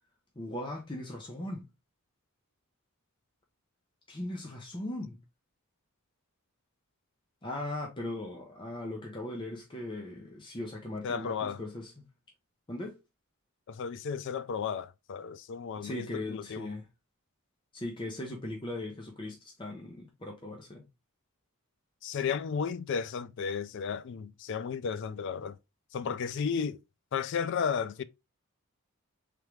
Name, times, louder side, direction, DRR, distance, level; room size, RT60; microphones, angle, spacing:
voice 1, 0.4-1.7 4.1-5.2 7.4-11.9 12.7-13.0 15.8-16.8 17.7-20.8, left 1 dB, 20° left, 0.7 m, -38 dB
voice 2, 11.0-11.6 13.7-16.7 22.0-25.6 25.9-26.8 27.1-28.0, left 6 dB, 55° left, 0.3 m, -33 dB
3.6 x 3.3 x 3.1 m
head